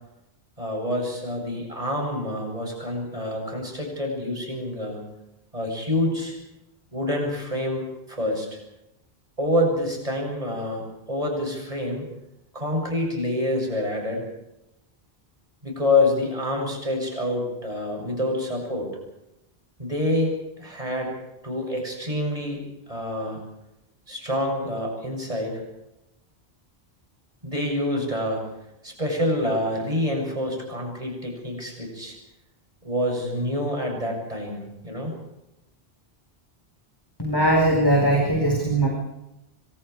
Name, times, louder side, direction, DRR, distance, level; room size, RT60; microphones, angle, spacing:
voice 1, 0.6-5.1 5.5-6.4 6.9-8.6 9.4-10.8 11.1-12.0 12.5-14.2 15.6-18.9 19.8-21.1 21.4-22.6 22.9-23.4 24.1-25.6 27.4-28.4 28.8-32.2 32.8-35.1, left 1 dB, 35° right, 1 dB, 7.9 m, -27 dB
voice 2, 37.2-38.9, right 1 dB, 20° left, -1 dB, 4.8 m, -20 dB
27.5 x 25.5 x 4.9 m, 0.91 s
omnidirectional pair, 1.1 m